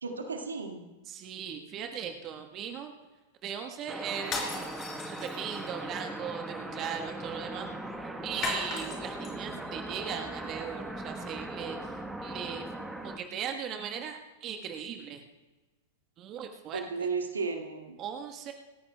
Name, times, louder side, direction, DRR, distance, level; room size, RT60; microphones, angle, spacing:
voice 1, 0.0-0.9 16.7-18.0, right 4 dB, 75° right, 4 dB, 1.8 m, -34 dB
voice 2, 1.1-2.9 3.4-4.8 5.1-7.7 8.2-11.9 12.2-12.7 13.0-15.2 16.2-16.8 18.0-18.5, right 8 dB, 30° right, 6 dB, 1.2 m, -38 dB
sound 1, 3.9-13.2, right 1 dB, 5° right, 1.1 m, -39 dB
sound 2, 4.2-5.7 8.4-9.3, left 4 dB, 30° left, 4.4 m, -36 dB
27.5 x 14.5 x 2.2 m, 1.2 s
figure-of-eight pair, 100°, 0 cm